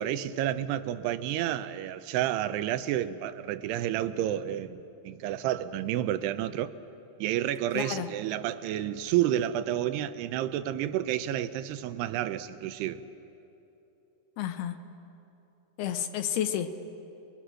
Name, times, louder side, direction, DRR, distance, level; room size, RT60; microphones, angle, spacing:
voice 1, 0.0-6.7 7.2-13.0, right 12 dB, 85° right, 12 dB, 2.8 m, -30 dB
voice 2, 7.7-8.1 14.4-14.8 15.8-16.7, left 10 dB, 75° left, 8 dB, 2.9 m, -31 dB
27.5 x 21.5 x 6.4 m, 2.9 s
omnidirectional pair, 4.7 m